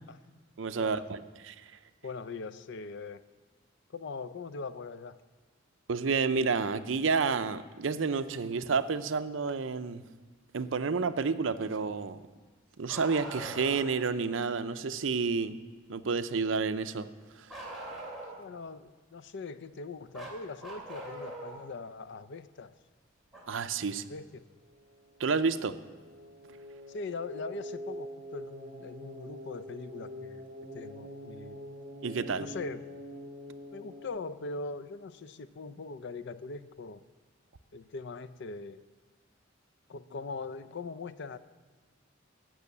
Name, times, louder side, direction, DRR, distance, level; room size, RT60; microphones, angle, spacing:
voice 1, 0.6-1.8 5.9-10.0 10.5-12.2 12.8-15.6 15.9-17.1 17.4-17.5 23.5-24.0 25.2-25.7 32.0-32.5, right 5 dB, 70° right, 12 dB, 0.6 m, -30 dB
voice 2, 2.0-3.2 3.9-5.2 18.4-22.7 23.8-24.5 26.9-31.6 32.4-32.8 33.7-37.0 37.7-38.8 39.9-41.4, left 4 dB, 60° left, 14 dB, 0.5 m, -41 dB
Bark, 12.9-14.0 17.5-18.5 20.1-21.6 23.3-23.4 25.3-25.4 26.5-26.6, right 1 dB, ahead, 2.9 m, -42 dB
sound 1, 24.6-34.1, equal, 40° right, 1.7 m, -45 dB
13.5 x 6.2 x 8.4 m, 1.4 s
head